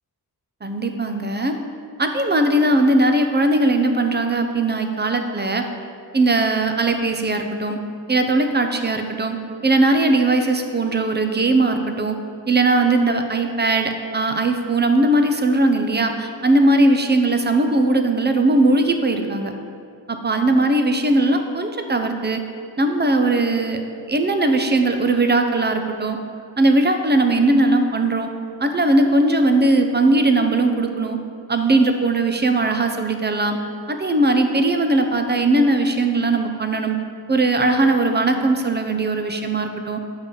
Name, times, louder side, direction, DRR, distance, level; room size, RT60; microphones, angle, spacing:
voice 1, 0.6-1.6 2.0-5.7 6.1-7.8 8.1-9.4 9.6-12.2 12.5-19.5 20.1-22.4 22.8-23.8 24.1-26.2 26.6-28.3 28.6-31.2 31.5-33.6 33.9-37.0 37.3-40.0, right 2 dB, 25° right, 6 dB, 0.6 m, -19 dB
7.3 x 5.3 x 3.9 m, 2.5 s
wide cardioid pair, 75°, 40 cm